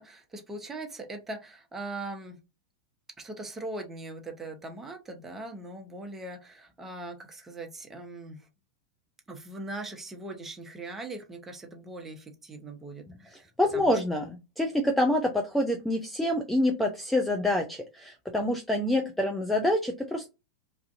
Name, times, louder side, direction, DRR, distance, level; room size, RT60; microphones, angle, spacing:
voice 1, 0.0-2.4 3.2-8.4 9.3-14.0, right 2 dB, 15° right, 0.8 m, -40 dB
voice 2, 13.6-20.3, left 1 dB, 5° left, 0.4 m, -26 dB
2.5 x 2.4 x 2.4 m
figure-of-eight pair, 95°, 2 cm